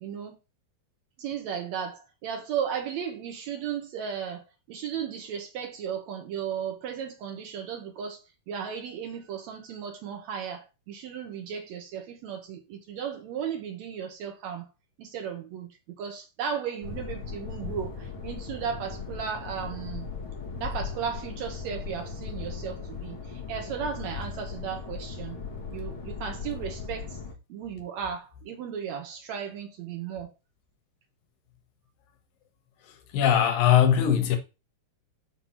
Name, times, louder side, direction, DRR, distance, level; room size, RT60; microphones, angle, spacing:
voice 1, 0.0-0.4 1.2-8.2 8.5-14.7 15.0-20.1 20.6-25.4 25.7-27.2 27.5-30.3, right 7 dB, 75° right, 1.7 m, -35 dB
sound 1, 16.8-27.3, left 5 dB, 55° left, 1.4 m, -38 dB
voice 2, 33.1-34.4, left 9 dB, 80° left, 2.6 m, -20 dB
6.2 x 2.8 x 5.5 m
omnidirectional pair, 4.0 m